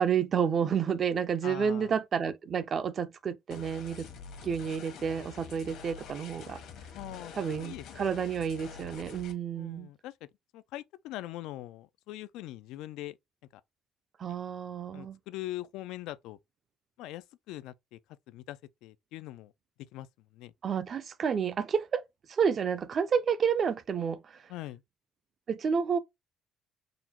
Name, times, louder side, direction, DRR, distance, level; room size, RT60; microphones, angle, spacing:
voice 1, 0.0-4.1 4.4-6.6 7.4-9.9 14.2-15.2 20.6-22.0 22.3-24.4 25.5-26.0, right 7 dB, 35° right, 0.4 m, -30 dB
voice 2, 1.4-1.9 6.9-7.8 9.5-10.1 10.5-13.2 13.5-13.6 14.9-16.4 17.0-18.0 18.3-19.5 19.9-20.1 20.3-20.5 24.5-24.8, left 15 dB, 90° left, 0.3 m, -42 dB
sound 1, 3.5-9.3, left 6 dB, 65° left, 1.0 m, -47 dB
3.8 x 2.1 x 4.4 m
cardioid pair, 155°, 0 cm